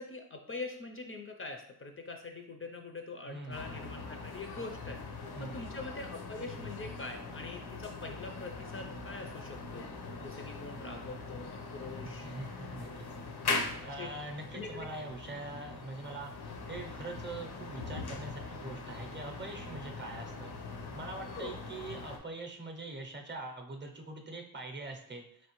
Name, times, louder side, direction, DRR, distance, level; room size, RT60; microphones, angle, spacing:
voice 1, 0.0-5.0 5.4-9.9 10.2-12.3 13.7-14.1 14.5-14.9 21.3-21.6, left 3 dB, 35° left, 4 dB, 0.4 m, -43 dB
voice 2, 3.3-3.7 5.4-5.7 12.0-13.1 13.6-20.5 20.9-25.5, right 2 dB, 30° right, 3 dB, 0.6 m, -43 dB
sound 1, 3.5-22.2, left 3 dB, 85° left, 0.7 m, -41 dB
4.1 x 3.1 x 3.0 m, 0.67 s
wide cardioid pair, 120°, 37 cm